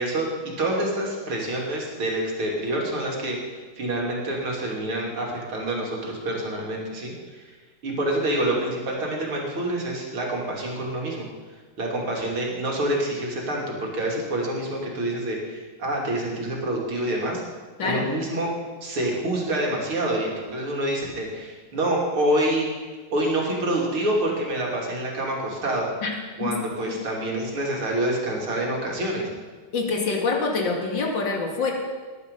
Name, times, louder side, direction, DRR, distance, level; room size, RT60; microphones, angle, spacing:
voice 1, 0.0-7.6 7.8-11.3 11.8-17.4 17.8-18.5 18.8-25.8 26.4-29.3, right 1 dB, 75° right, -2 dB, 3.8 m, -27 dB
voice 2, 29.7-31.7, left 4 dB, 60° left, 1 dB, 2.8 m, -25 dB
19.0 x 11.5 x 5.4 m, 1.4 s
omnidirectional pair, 2.3 m